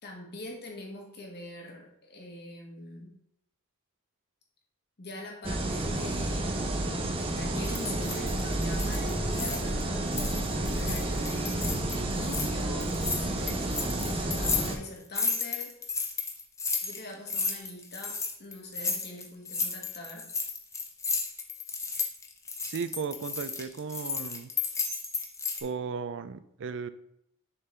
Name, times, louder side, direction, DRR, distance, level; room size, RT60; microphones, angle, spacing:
voice 1, 0.0-3.1 5.0-10.0 10.6-16.1 16.8-20.3, left 2 dB, 45° left, 0 dB, 1.6 m, -43 dB
sound 1, 5.4-14.8, right 1 dB, 25° right, 0.7 m, -30 dB
sound 2, 7.6-9.8 10.1-12.5 12.8-25.6, left 4 dB, 15° left, 0.7 m, -33 dB
voice 2, 22.6-24.5 25.6-26.9, right 5 dB, 55° right, 12 dB, 0.4 m, -35 dB
6.6 x 3.8 x 4.4 m, 0.75 s
head